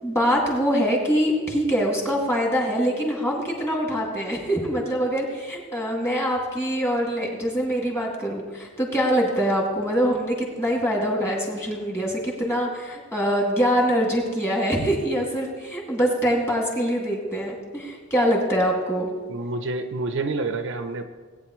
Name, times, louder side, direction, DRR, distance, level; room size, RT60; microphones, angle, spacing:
voice 1, 0.0-19.1, equal, 10° left, -1 dB, 2.2 m, -24 dB
voice 2, 19.3-21.0, right 3 dB, 60° right, 8 dB, 0.6 m, -28 dB
18.0 x 9.1 x 3.1 m, 1.5 s
head